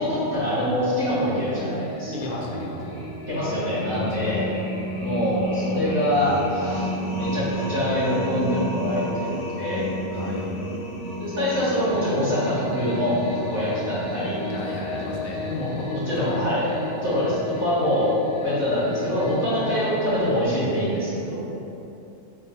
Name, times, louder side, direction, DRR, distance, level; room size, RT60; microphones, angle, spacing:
voice 1, 0.0-2.4 3.3-4.5 5.0-9.3 9.5-9.9 11.2-14.4 16.1-16.6 17.0-18.1 18.4-21.4, equal, 40° right, -13 dB, 1.9 m, -25 dB
sound 1, 0.9-20.5, equal, 20° left, 0.4 m, -32 dB
voice 2, 2.1-3.0 3.9-4.3 10.1-10.6 13.5-13.6 14.5-16.4 16.6-16.8, left 2 dB, 75° left, -2 dB, 0.4 m, -33 dB
4.5 x 2.2 x 3.9 m, 2.9 s
omnidirectional pair, 1.4 m